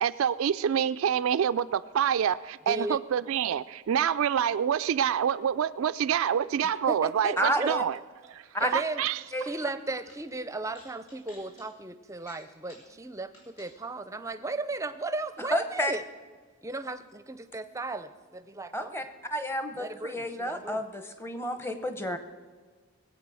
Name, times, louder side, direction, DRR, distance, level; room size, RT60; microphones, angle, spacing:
voice 1, 0.0-8.0 8.3-8.4 8.7-9.2, right 8 dB, 70° right, 13 dB, 0.3 m, -27 dB
voice 2, 2.7-3.0 6.6-7.7 8.6-9.0 9.4-16.0 16.6-19.1 19.7-20.8, right 2 dB, 15° right, 11 dB, 0.5 m, -35 dB
voice 3, 7.4-7.8 8.5-8.7 9.3-9.5 15.5-15.9 18.7-19.0 19.3-22.2, equal, 10° left, 9 dB, 0.8 m, -30 dB
Telefono publico, 8.3-9.1 9.4-9.7 10.0-10.2 10.7-11.6 12.2-12.9 13.3-13.7, left 1 dB, 75° left, 5.4 m, -54 dB
21.0 x 8.2 x 6.2 m, 1.5 s
head